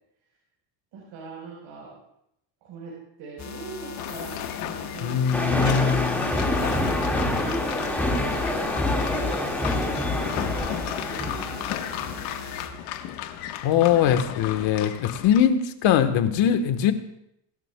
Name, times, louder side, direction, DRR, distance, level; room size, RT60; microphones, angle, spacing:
voice 1, 0.9-2.0 2.6-7.9 8.6-8.7 9.0-9.9 10.2-12.5, right 4 dB, 65° right, -3 dB, 4.3 m, -42 dB
sound 1, 3.4-12.7, left 6 dB, 35° left, 1.6 m, -39 dB
sound 2, 4.0-15.4, left 11 dB, 90° left, 1.3 m, -35 dB
voice 2, 5.0-6.9 13.6-16.9, left 9 dB, 65° left, 9 dB, 1.3 m, -22 dB
sound 3, 5.3-12.4, left 1 dB, 5° left, 1.9 m, -27 dB
23.0 x 12.0 x 2.2 m, 0.79 s
cardioid pair, 115°, 49 cm